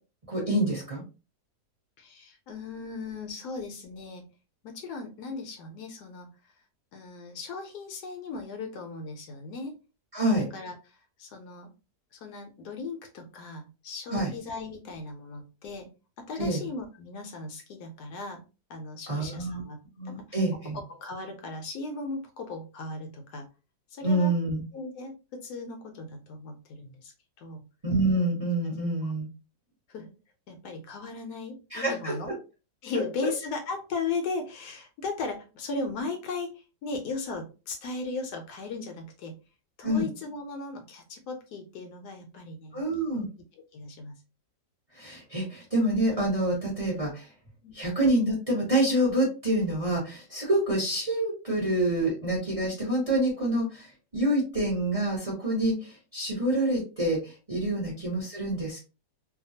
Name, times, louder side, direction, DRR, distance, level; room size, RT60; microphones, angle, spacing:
voice 1, 0.3-1.0 10.1-10.5 14.1-14.3 16.4-16.6 19.1-19.6 20.0-20.8 24.0-24.6 27.8-29.3 31.7-32.1 33.2-33.3 39.8-40.1 42.7-43.3 44.9-47.3 47.7-58.8, right 1 dB, 25° right, -3 dB, 0.8 m, -27 dB
voice 2, 2.0-4.3 4.6-6.3 6.9-9.8 10.4-11.7 12.1-15.9 16.2-18.4 18.7-19.8 20.0-20.2 20.9-23.5 23.9-24.3 24.7-27.1 27.4-27.7 29.0-29.1 29.9-30.1 30.5-32.3 32.8-39.4 39.8-42.8 43.7-44.2 47.6-47.8, left 3 dB, 75° left, 4 dB, 1.0 m, -37 dB
2.8 x 2.3 x 2.6 m, 0.31 s
omnidirectional pair, 1.9 m